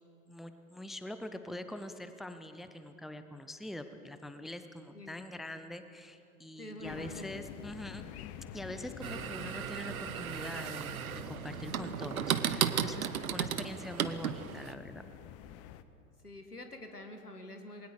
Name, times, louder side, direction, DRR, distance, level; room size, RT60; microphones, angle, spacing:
voice 1, 0.3-8.0 8.5-15.1, left 1 dB, ahead, 9 dB, 0.6 m, -44 dB
voice 2, 6.6-7.4 13.5-13.8 16.2-17.9, left 1 dB, 85° left, 6 dB, 2.0 m, -47 dB
sound 1, 6.8-15.8, left 11 dB, 35° left, 1.0 m, -48 dB
sound 2, 9.0-14.7, right 9 dB, 70° right, 0.9 m, -35 dB
28.0 x 21.0 x 4.9 m, 2.8 s
figure-of-eight pair, 90°, 45 cm